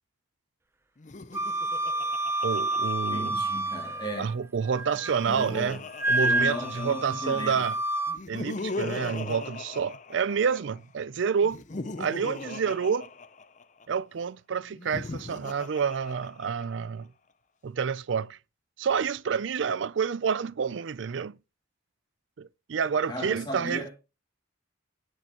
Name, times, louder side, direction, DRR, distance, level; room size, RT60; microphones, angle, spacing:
Laughter, 1.0-3.7 4.8-7.4 8.1-10.8 11.4-13.8 14.7-16.8, left 3 dB, 40° left, 0.6 m, -40 dB
Wind instrument woodwind instrument, 1.3-4.3 4.7-5.5 6.0-8.2, right 1 dB, 15° right, 0.6 m, -29 dB
voice 1, 2.4-3.4 4.2-5.8 6.1-7.8 8.3-11.6 12.0-13.1 13.9-17.1 17.6-18.4 18.8-21.3 22.4-23.8, right 6 dB, 70° right, 0.4 m, -28 dB
voice 2, 3.1-4.3 5.2-5.8 6.1-7.6 23.1-23.9, equal, 20° left, 2.4 m, -36 dB
16.0 x 6.6 x 2.9 m
head